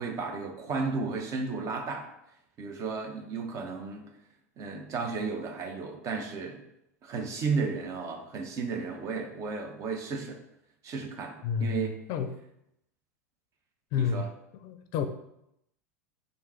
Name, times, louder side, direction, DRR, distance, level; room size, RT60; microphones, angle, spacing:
voice 1, 0.0-2.1 2.6-4.1 4.6-6.6 7.0-10.4 10.8-12.0 13.9-14.3, right 4 dB, 40° right, 4 dB, 0.7 m, -33 dB
voice 2, 11.4-12.3 13.9-14.3 14.5-15.1, left 7 dB, 50° left, 8 dB, 0.4 m, -30 dB
3.6 x 2.6 x 4.3 m, 0.79 s
hypercardioid pair, 85°, 8 cm